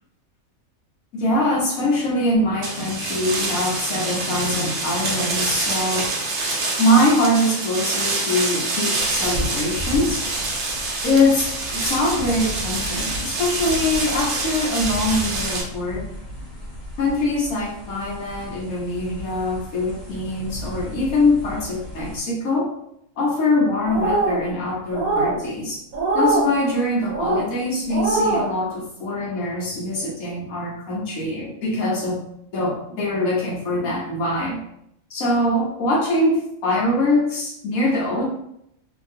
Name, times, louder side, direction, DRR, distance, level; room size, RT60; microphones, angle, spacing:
voice 1, 1.1-6.1 6.8-10.2 11.0-16.1 17.0-22.7 23.2-25.8 26.1-32.2 32.5-34.6 35.1-38.3, left 1 dB, 85° left, -4 dB, 1.4 m, -23 dB
sound 1, 2.6-15.6, right 3 dB, 60° right, 0.9 m, -26 dB
sound 2, 8.9-22.2, left 1 dB, 50° left, 1.3 m, -35 dB
sound 3, 23.9-24.4 24.9-25.4 25.9-26.5 27.1-27.4 27.9-28.4, right 3 dB, 85° right, 1.3 m, -22 dB
2.9 x 2.8 x 2.6 m, 0.75 s
omnidirectional pair, 1.4 m